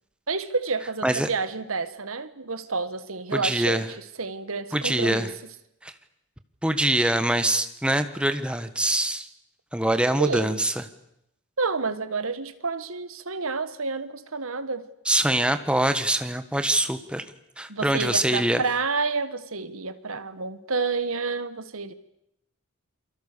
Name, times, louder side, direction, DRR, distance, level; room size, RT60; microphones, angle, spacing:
voice 1, 0.3-3.8 4.2-5.3 10.2-10.6 11.6-14.9 17.7-21.9, right 4 dB, 75° right, 1.6 m, -29 dB
voice 2, 3.3-3.9 4.7-5.3 5.8-5.9 6.6-9.3 9.7-10.8 15.0-17.2 17.6-18.6, right 1 dB, 5° right, 1.4 m, -24 dB
28.5 x 24.0 x 6.9 m
head